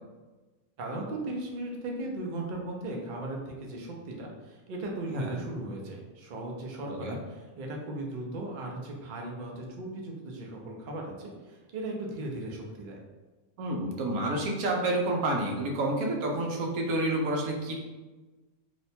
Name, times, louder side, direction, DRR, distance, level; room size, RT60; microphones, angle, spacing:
voice 1, 0.8-13.0, right 2 dB, 60° right, 0 dB, 0.5 m, -37 dB
voice 2, 6.9-7.2 13.6-17.7, right 1 dB, 80° right, 1 dB, 1.1 m, -29 dB
2.9 x 2.2 x 4.1 m, 1.2 s
omnidirectional pair, 1.5 m